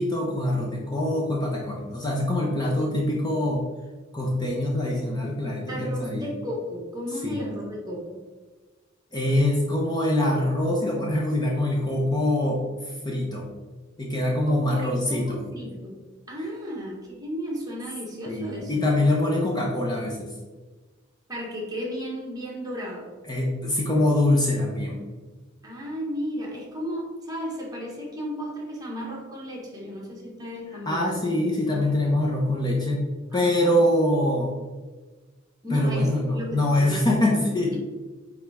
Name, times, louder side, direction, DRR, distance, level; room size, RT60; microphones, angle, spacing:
voice 1, 0.0-3.6 4.1-6.3 7.2-7.5 9.1-12.6 13.0-13.5 14.0-15.4 16.4-16.5 18.3-20.3 23.3-25.0 30.9-33.1 33.3-34.5 35.7-37.8, left 1 dB, 20° left, -2 dB, 0.8 m, -24 dB
voice 2, 5.7-8.2 14.4-16.0 16.3-18.8 21.3-23.1 25.6-31.3 33.3-33.8 35.6-37.8, equal, 20° right, -3 dB, 1.6 m, -34 dB
8.9 x 3.5 x 3.5 m, 1.3 s
head